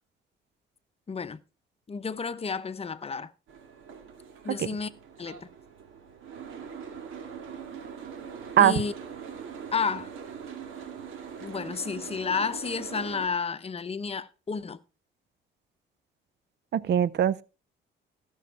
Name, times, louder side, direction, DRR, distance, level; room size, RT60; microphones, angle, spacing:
voice 1, 1.1-1.4 1.9-3.3 4.4-4.9 5.2-5.5 8.6-8.9 9.7-10.1 11.4-14.8, left 5 dB, 30° left, 0.8 m, -31 dB
Boat Water vehicle, 3.5-13.3, right 7 dB, 85° right, 2.2 m, -42 dB
voice 2, 16.7-17.4, right 10 dB, 60° right, 0.6 m, -22 dB
15.5 x 6.4 x 4.5 m
cardioid pair, 90°, 20 cm